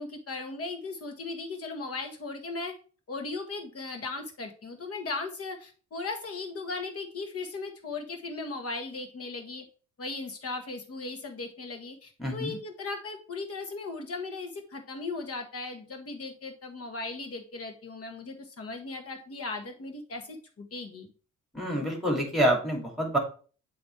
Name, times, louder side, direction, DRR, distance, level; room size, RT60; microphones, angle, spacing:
voice 1, 0.0-2.8 3.1-9.7 10.0-21.1 21.7-21.9, left 3 dB, 50° left, 5 dB, 1.7 m, -37 dB
voice 2, 12.2-12.6 21.5-23.2, right 1 dB, ahead, 1 dB, 2.5 m, -27 dB
7.8 x 3.3 x 4.6 m, 0.39 s
cardioid pair, 90°, 30 cm